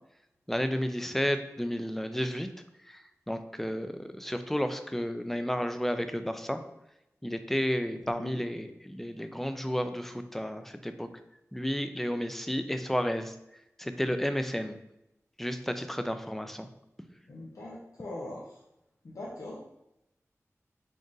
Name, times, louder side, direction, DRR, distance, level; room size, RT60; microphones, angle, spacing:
voice 1, 0.5-2.5 2.9-3.0 3.3-6.6 7.2-11.1 11.5-13.3 13.8-14.8 15.4-16.7, equal, 5° left, 8 dB, 0.3 m, -32 dB
voice 2, 8.1-8.4 17.3-18.6 19.0-19.6, left 1 dB, 80° left, -5 dB, 0.6 m, -41 dB
3.8 x 2.5 x 3.8 m, 0.86 s
wide cardioid pair, 65°, 5 cm